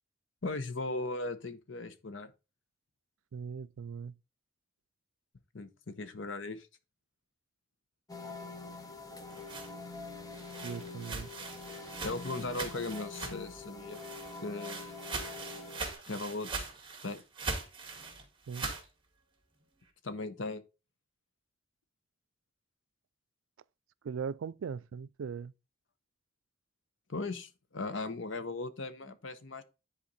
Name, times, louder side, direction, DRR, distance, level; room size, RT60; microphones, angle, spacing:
voice 1, 0.4-2.3 5.5-6.7 12.0-14.0 14.4-14.9 16.1-16.7 17.0-17.2 20.0-20.6 27.1-29.6, left 2 dB, 70° left, 0.9 m, -38 dB
voice 2, 3.3-4.2 10.6-11.3 18.5-18.7 24.0-25.5, right 6 dB, 85° right, 0.4 m, -39 dB
sound 1, 8.1-15.9, left 3 dB, 20° left, 1.1 m, -45 dB
sound 2, 9.1-13.6 13.9-18.9, right 4 dB, 25° right, 2.1 m, -41 dB
10.0 x 4.2 x 4.1 m
head